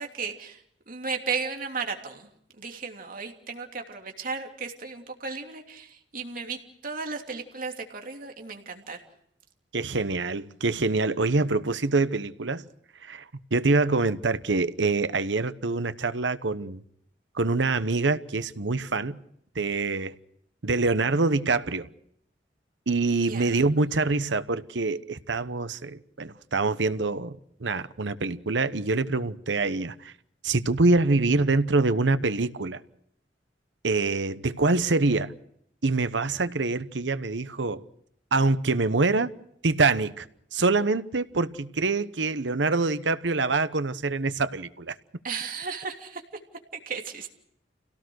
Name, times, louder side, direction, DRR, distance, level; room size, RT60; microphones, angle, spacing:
voice 1, 0.0-2.3 2.6-9.0 23.2-23.7 45.2-46.2 46.9-47.3, right 5 dB, 50° right, 3.0 m, -35 dB
voice 2, 9.7-12.6 13.0-13.3 13.5-16.8 17.3-19.2 19.5-20.1 20.6-21.9 22.9-30.1 30.4-32.8 33.8-35.3 35.8-37.8 38.3-39.3 39.6-40.3 40.5-44.9, right 3 dB, 85° right, 1.0 m, -25 dB
28.5 x 17.5 x 6.4 m
head